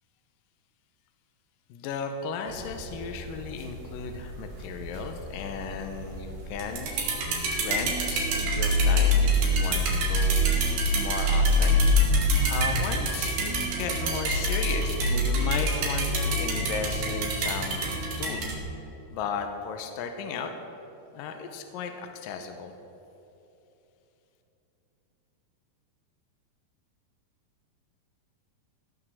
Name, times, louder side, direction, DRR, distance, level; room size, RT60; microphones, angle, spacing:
voice 1, 1.7-6.9 7.6-10.6 10.9-11.8 12.5-18.5 19.1-20.5 21.1-22.8, left 6 dB, 75° left, 5 dB, 2.2 m, -35 dB
sound 1, 2.5-18.6, equal, 80° right, 4.3 m, -26 dB
16.0 x 6.5 x 7.6 m, 3.0 s
omnidirectional pair, 4.6 m